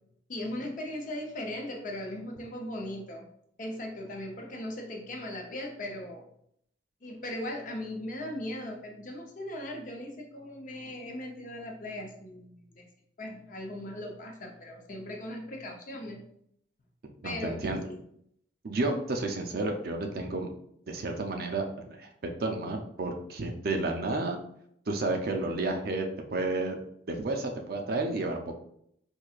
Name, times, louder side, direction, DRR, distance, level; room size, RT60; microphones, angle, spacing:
voice 1, 0.3-3.2 3.6-6.2 7.0-12.9 13.2-16.2 17.2-17.5 17.9-18.0, left 1 dB, 45° left, 1 dB, 0.7 m, -38 dB
voice 2, 17.2-17.8 18.6-20.5 20.9-24.4 24.9-26.8 27.1-28.6, right 2 dB, 55° right, 3 dB, 0.5 m, -31 dB
4.5 x 2.7 x 2.4 m, 0.70 s
head